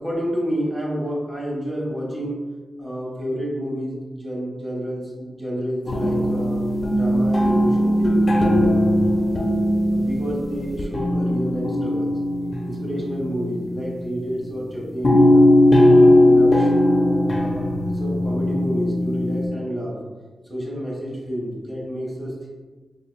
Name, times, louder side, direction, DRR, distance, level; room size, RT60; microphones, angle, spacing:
voice 1, 0.0-2.4 2.8-6.6 6.9-8.2 8.5-8.8 9.1-9.2 9.9-12.1 12.6-15.4 15.8-16.7 17.3-20.0 20.5-22.5, equal, 20° right, -6 dB, 1.3 m, -29 dB
sound 1, 5.9-14.2 15.0-19.5, left 1 dB, 45° left, 0.5 m, -18 dB
3.9 x 3.0 x 2.2 m, 1.3 s
cardioid pair, 65°, 0 cm